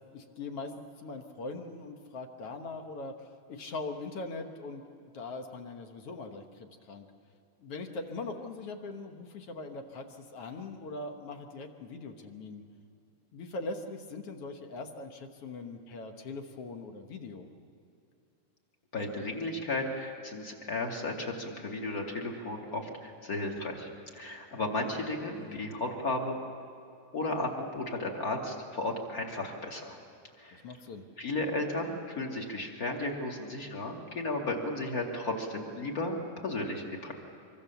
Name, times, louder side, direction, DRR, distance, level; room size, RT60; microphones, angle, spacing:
voice 1, 0.1-7.1 7.6-12.6 13.3-17.5 25.4-25.7 30.5-31.1, left 3 dB, 55° left, 5 dB, 2.0 m, -41 dB
voice 2, 18.9-26.4 27.1-30.0 30.4-30.6 31.2-37.1, left 2 dB, 30° left, 1 dB, 2.5 m, -34 dB
25.0 x 24.5 x 7.1 m, 2.7 s
omnidirectional pair, 3.9 m